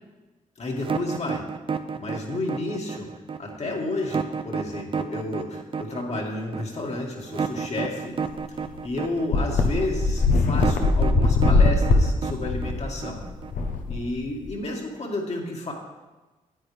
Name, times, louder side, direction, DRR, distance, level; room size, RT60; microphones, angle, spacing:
voice 1, 0.6-1.4 2.0-3.1 3.4-8.1 8.8-13.2 13.9-15.7, left 2 dB, 50° left, 0 dB, 2.0 m, -31 dB
sound 1, 0.8-13.7, right 6 dB, 40° right, 0.5 m, -31 dB
sound 2, 8.3-8.4 8.7-8.8 9.3-14.5, left 3 dB, 70° left, 1.0 m, -21 dB
10.0 x 8.6 x 3.4 m, 1.2 s
cardioid pair, 60°, 14 cm